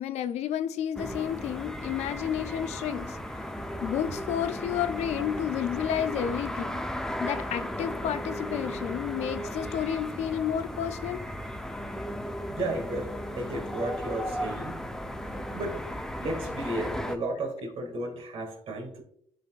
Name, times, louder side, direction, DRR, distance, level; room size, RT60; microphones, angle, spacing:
voice 1, 0.0-3.2 3.8-6.8 7.2-11.3, left 9 dB, 75° left, 0.4 m, -31 dB
sound 1, 1.0-17.2, equal, 5° left, 0.5 m, -35 dB
voice 2, 12.5-14.8 15.3-15.8 16.2-19.0, right 1 dB, 55° right, 2.0 m, -34 dB
10.5 x 4.0 x 2.4 m
cardioid pair, 105°, 11 cm